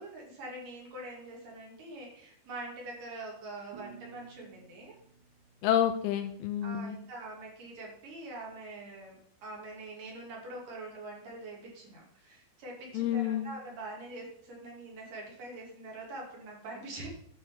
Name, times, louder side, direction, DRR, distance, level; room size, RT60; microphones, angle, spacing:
voice 1, 0.0-5.0 6.6-17.1, right 2 dB, 55° right, -2 dB, 4.1 m, -44 dB
sound 1, 3.7-6.7, right 8 dB, 85° right, 4.2 m, -54 dB
voice 2, 5.6-7.0 12.9-13.5, left 10 dB, 80° left, 8 dB, 2.4 m, -29 dB
10.5 x 4.6 x 7.2 m, 0.64 s
omnidirectional pair, 4.8 m